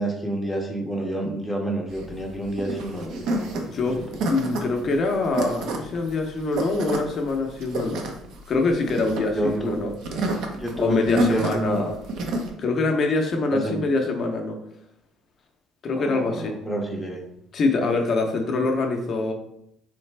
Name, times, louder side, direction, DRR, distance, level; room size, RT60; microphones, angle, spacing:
voice 1, 0.0-3.5 4.0-4.2 9.3-9.9 10.6-11.9 13.5-13.9 15.9-17.3, right 1 dB, ahead, 0 dB, 0.6 m, -28 dB
sound 1, 1.9-12.5, right 2 dB, 65° right, 0.6 m, -29 dB
voice 2, 3.6-4.0 4.3-8.1 8.5-9.9 10.2-12.0 12.6-14.6 15.8-16.5 17.5-19.3, left 3 dB, 40° left, 3 dB, 0.5 m, -24 dB
3.9 x 3.2 x 3.2 m, 0.78 s
cardioid pair, 135°, 0 cm